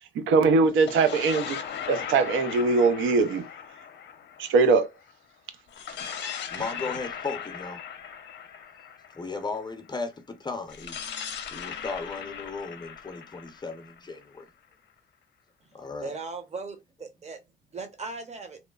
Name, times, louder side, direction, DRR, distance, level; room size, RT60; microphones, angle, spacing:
voice 1, 0.2-1.6 1.9-3.5 4.4-4.9, right 4 dB, 80° right, 0.6 m, -21 dB
sound 1, 0.7-5.1 5.7-9.6 10.7-14.5, left 8 dB, 60° left, 0.6 m, -38 dB
voice 2, 6.5-7.8 9.1-11.0 11.5-14.5 15.7-16.1, left 4 dB, 20° left, 0.6 m, -36 dB
voice 3, 16.0-17.4 17.7-18.6, right 4 dB, 35° right, 0.8 m, -38 dB
2.9 x 2.0 x 2.3 m
cardioid pair, 90°, 20 cm